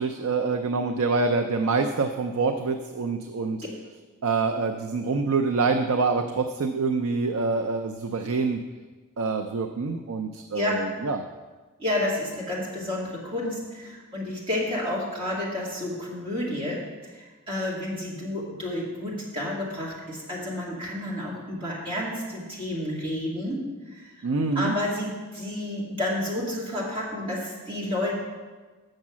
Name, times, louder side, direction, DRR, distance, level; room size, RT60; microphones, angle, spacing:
voice 1, 0.0-3.6 4.2-8.6 9.2-11.2 24.2-24.8, right 4 dB, 80° right, 6 dB, 0.5 m, -26 dB
voice 2, 11.8-23.6 23.9-24.3 24.5-28.1, left 1 dB, 25° right, -6 dB, 2.4 m, -30 dB
7.1 x 6.5 x 7.3 m, 1.3 s
head